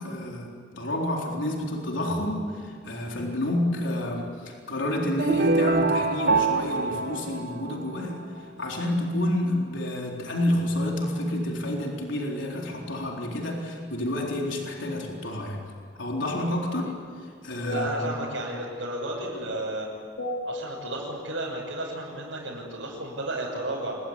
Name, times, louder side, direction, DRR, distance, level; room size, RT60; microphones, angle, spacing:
voice 1, 0.0-15.6 16.0-16.9 17.2-18.2 20.2-20.4, left 1 dB, 85° left, 0 dB, 4.1 m, -29 dB
sound 1, 5.2-8.2, right 3 dB, 50° right, 1.2 m, -24 dB
voice 2, 17.7-19.9 20.5-24.0, right 1 dB, 85° right, -6 dB, 6.5 m, -33 dB
28.0 x 21.0 x 9.9 m, 2.1 s
head